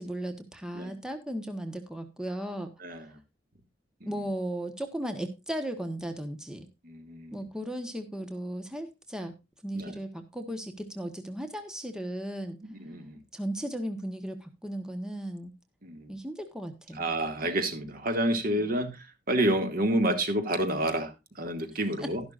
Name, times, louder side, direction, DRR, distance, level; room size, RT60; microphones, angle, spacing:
voice 1, 0.0-2.7 4.0-6.7 7.3-9.3 9.6-12.6 13.3-15.5 16.1-17.1 22.0-22.1, right 1 dB, 5° right, 1.2 m, -36 dB
voice 2, 2.8-3.2 4.0-4.1 6.8-7.5 9.7-9.9 12.7-13.2 15.8-16.1 16.9-22.2, right 1 dB, 55° right, 2.2 m, -29 dB
12.5 x 11.5 x 2.5 m
head